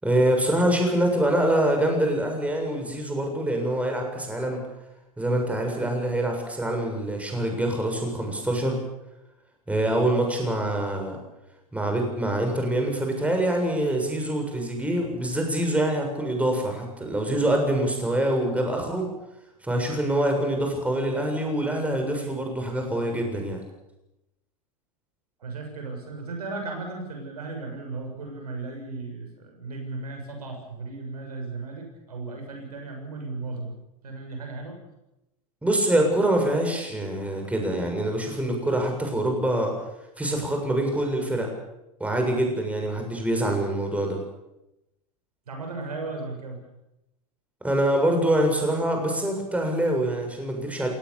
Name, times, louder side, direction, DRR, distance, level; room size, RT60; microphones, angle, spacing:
voice 1, 0.0-4.6 5.2-8.8 9.7-11.2 11.7-19.1 19.6-23.6 35.6-39.7 40.2-41.5 42.0-44.2 47.6-50.9, right 1 dB, 5° right, 3 dB, 7.0 m, -25 dB
voice 2, 25.4-33.7 34.0-34.8 45.5-46.6, right 3 dB, 85° right, 3 dB, 7.0 m, -36 dB
27.5 x 18.5 x 7.1 m, 0.89 s
hypercardioid pair, 95°, 19 cm